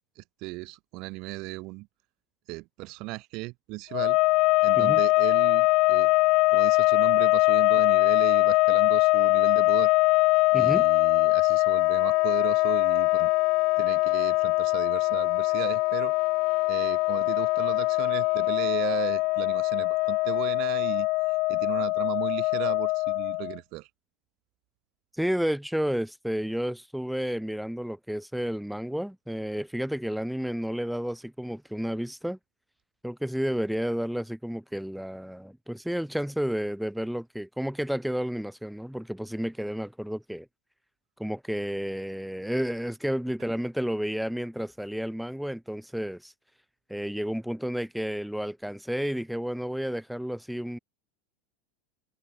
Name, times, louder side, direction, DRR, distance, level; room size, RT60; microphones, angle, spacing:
voice 1, 0.1-1.9 2.5-4.2 4.6-6.1 6.5-9.9 10.5-13.3 13.8-16.1 16.7-23.9, right 24 dB, 50° right, 1.6 m, -36 dB
sound 1, 3.9-23.6, left 23 dB, 45° left, 0.9 m, -23 dB
voice 2, 10.5-10.8 25.2-32.4 33.0-40.5 41.2-46.3 46.9-50.8, equal, ahead, 1.6 m, -31 dB
supercardioid pair, 155°, 0 cm